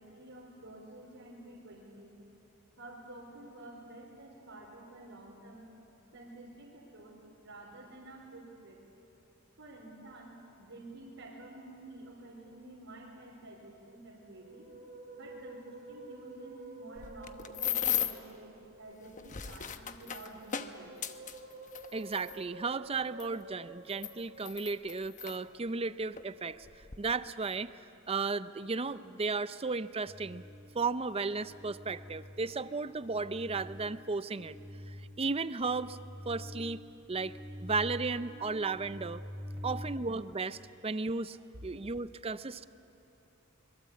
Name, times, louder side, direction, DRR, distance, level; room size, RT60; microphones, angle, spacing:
voice 1, 0.0-2.2 2.8-5.7 6.1-8.8 9.6-14.6 15.1-21.2 39.6-39.7, right 2 dB, 70° right, -4 dB, 3.9 m, -50 dB
Musical instrument, 14.3-18.9 20.2-25.0 26.2-26.6, right 2 dB, 45° right, 3.0 m, -50 dB
sound 1, 17.0-18.3 19.1-22.4 23.2-23.3 23.9-25.4 26.2-26.3 26.6-27.0, left 9 dB, 35° left, 0.9 m, -36 dB
voice 2, 21.9-26.7 27.0-27.7 28.1-30.4 30.7-34.6 34.9-36.0 36.3-36.8 37.1-39.2 39.6-41.4 41.6-42.7, right 4 dB, 25° right, 14 dB, 0.5 m, -34 dB
sound 2, 30.1-40.0, left 1 dB, ahead, 0.9 m, -47 dB
25.0 x 21.5 x 8.5 m, 2.9 s
head